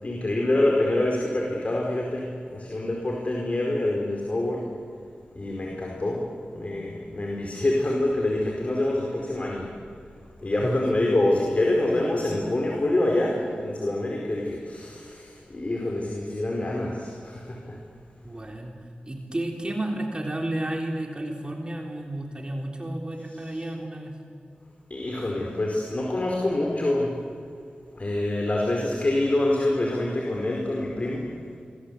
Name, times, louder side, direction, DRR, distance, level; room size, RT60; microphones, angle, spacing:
voice 1, 0.0-4.6 5.3-9.7 10.4-17.8 23.3-23.6 24.9-27.1 27.9-31.3, left 1 dB, 45° left, -1 dB, 4.7 m, -26 dB
voice 2, 10.6-11.2 18.2-18.7 19.0-24.2, right 1 dB, 30° right, 1 dB, 3.6 m, -32 dB
26.5 x 23.5 x 8.3 m, 2.4 s
wide cardioid pair, 65°, 3 cm